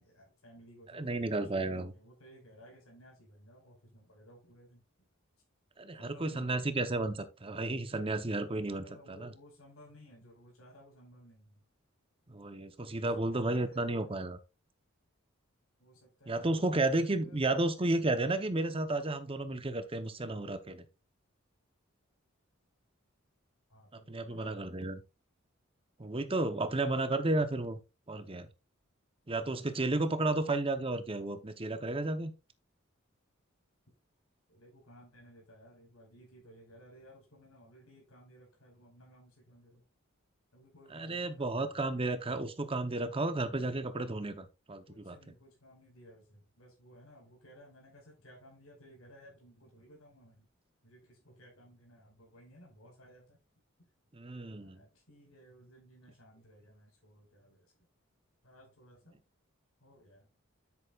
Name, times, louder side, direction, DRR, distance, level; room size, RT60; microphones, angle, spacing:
voice 1, 0.0-4.8 6.0-6.8 8.8-11.6 13.0-14.2 15.8-18.0 23.7-24.8 34.5-39.8 40.5-42.0 44.9-50.5 50.8-53.4 54.6-57.7 58.4-59.2 59.8-60.3, equal, 85° left, 5.1 m, -58 dB
voice 2, 0.9-1.9 5.8-8.8 9.2-9.3 12.3-14.4 16.3-20.8 24.1-25.0 26.0-27.8 28.1-28.5 29.3-32.3 40.9-45.1 54.1-54.8, right 2 dB, 25° right, 0.8 m, -32 dB
10.0 x 8.2 x 2.4 m
head